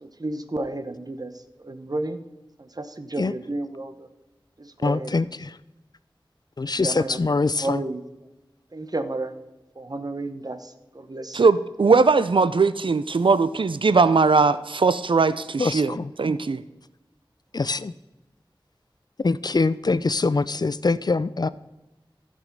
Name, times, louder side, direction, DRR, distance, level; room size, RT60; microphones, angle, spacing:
voice 1, 0.0-2.2 2.6-4.1 4.6-5.2 6.8-8.3 8.7-9.3 9.8-11.5, right 2 dB, 45° right, 9 dB, 0.9 m, -32 dB
voice 2, 4.8-5.6 6.6-7.8 15.6-16.1 17.5-17.9 19.2-21.5, left 3 dB, 50° left, 17 dB, 0.4 m, -24 dB
voice 3, 11.3-16.6, right 4 dB, 70° right, 15 dB, 0.4 m, -20 dB
15.0 x 5.1 x 5.3 m, 1.0 s
wide cardioid pair, 50°, 9 cm